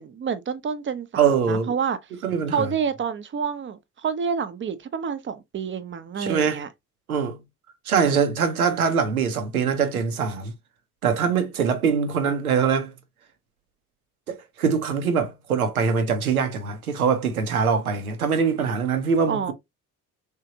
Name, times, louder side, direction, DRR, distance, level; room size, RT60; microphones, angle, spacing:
voice 1, 0.0-2.0 2.5-6.7 19.3-19.5, right 6 dB, 30° right, 0.7 m, -28 dB
voice 2, 1.1-1.7 2.2-2.7 6.2-6.6 7.1-7.4 7.9-10.5 11.0-12.9 14.3-19.5, right 6 dB, 85° right, 0.7 m, -23 dB
3.7 x 3.3 x 2.8 m
figure-of-eight pair, 45°, 42 cm